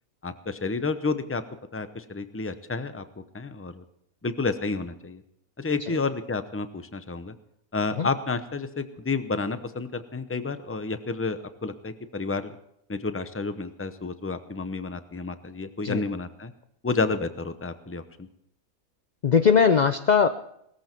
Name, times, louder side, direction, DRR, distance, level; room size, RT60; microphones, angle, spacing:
voice 1, 0.2-1.4 1.7-3.8 4.2-5.2 5.6-7.3 7.7-12.5 12.9-16.5 16.8-18.3, left 3 dB, 15° left, 10 dB, 0.6 m, -30 dB
voice 2, 19.2-20.3, left 6 dB, 60° left, 9 dB, 0.4 m, -20 dB
19.0 x 14.0 x 4.5 m, 0.73 s
omnidirectional pair, 1.5 m